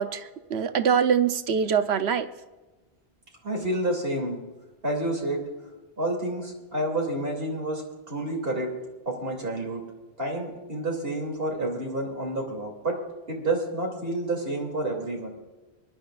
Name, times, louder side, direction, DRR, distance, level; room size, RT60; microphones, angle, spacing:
voice 1, 0.0-2.3, right 7 dB, 85° right, 10 dB, 1.0 m, -24 dB
voice 2, 3.4-4.4 4.8-5.4 6.0-8.7 9.1-9.8 10.2-13.0 13.3-15.3, right 1 dB, 65° right, 0 dB, 3.1 m, -29 dB
24.5 x 11.5 x 2.5 m, 1.1 s
omnidirectional pair, 1.1 m